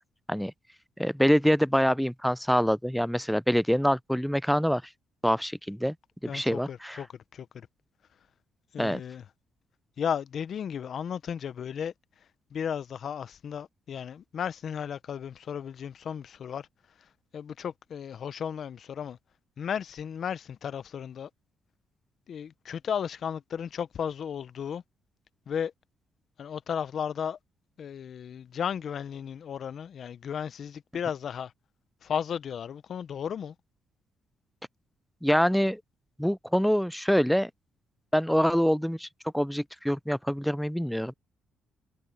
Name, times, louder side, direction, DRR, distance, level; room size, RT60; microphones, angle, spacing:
voice 1, 1.0-4.8 5.2-5.9 6.3-7.0 8.8-9.0 35.2-35.8 36.2-37.5 38.1-39.1 39.3-41.1, equal, ahead, 0.3 m, -25 dB
voice 2, 6.3-7.1 7.3-7.7 8.7-9.2 10.0-11.9 12.5-16.7 17.3-19.2 19.6-21.3 22.3-24.8 25.5-25.7 26.4-27.4 27.8-31.5 32.0-33.5, left 8 dB, 60° left, 0.7 m, -34 dB
cardioid pair, 90°, 0 cm